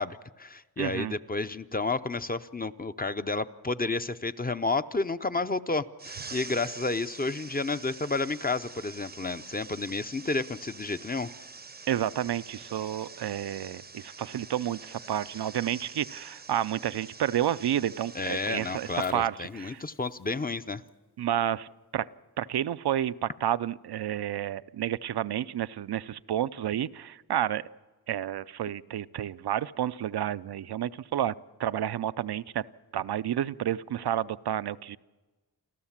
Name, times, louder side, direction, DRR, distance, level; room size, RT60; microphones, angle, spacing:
voice 1, 0.0-11.3 18.1-20.8, left 3 dB, 25° left, 11 dB, 0.6 m, -31 dB
voice 2, 0.8-1.2 11.9-19.8 21.2-21.7 21.9-22.1 22.4-27.7 28.1-31.3 31.6-32.6 32.9-35.0, right 11 dB, 80° right, 16 dB, 0.6 m, -30 dB
sound 1, 6.0-19.0, right 4 dB, 25° right, 0.6 m, -46 dB
Fire, 18.8-23.7 24.3-24.4, left 3 dB, 90° left, 3.5 m, -58 dB
29.0 x 13.5 x 7.3 m, 1.2 s
wide cardioid pair, 85°, 38 cm